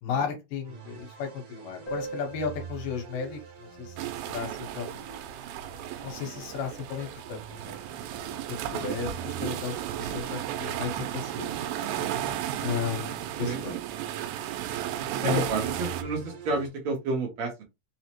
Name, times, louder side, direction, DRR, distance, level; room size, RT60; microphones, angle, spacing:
voice 1, 0.0-5.1 6.0-7.8 8.5-11.5 12.6-13.8 15.2-15.4, left 6 dB, 80° left, 2.6 m, -34 dB
sound 1, 0.6-16.7, right 6 dB, 55° right, 1.5 m, -46 dB
Piano, 1.9-7.2 7.5-7.6 7.8-7.9 8.3-8.4 9.1-9.3, right 4 dB, 50° left, 0.6 m, -45 dB
sound 2, 4.0-16.0, right 11 dB, 90° right, 2.3 m, -34 dB
voice 2, 15.2-17.6, right 3 dB, 75° right, 1.3 m, -31 dB
5.5 x 2.0 x 2.9 m
omnidirectional pair, 4.0 m